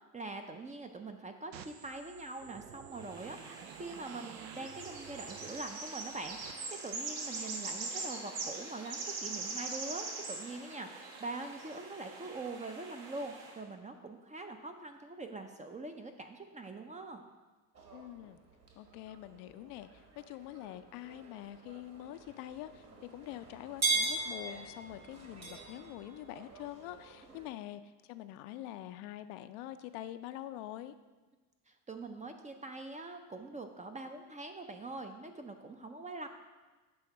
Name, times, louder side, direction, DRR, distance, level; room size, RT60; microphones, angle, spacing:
voice 1, 0.1-17.2 31.7-36.3, right 3 dB, 15° right, 6 dB, 0.4 m, -44 dB
sound 1, 1.5-6.5, right 9 dB, 80° right, 0.7 m, -52 dB
sound 2, 3.0-13.6, right 3 dB, 65° right, 1.5 m, -42 dB
sound 3, 17.7-27.5, right 3 dB, 30° right, 1.4 m, -40 dB
voice 2, 17.9-18.4 18.8-27.8 28.1-30.9, left 13 dB, 70° left, 11 dB, 0.6 m, -45 dB
7.7 x 3.5 x 5.8 m, 1.3 s
supercardioid pair, 85°, 48 cm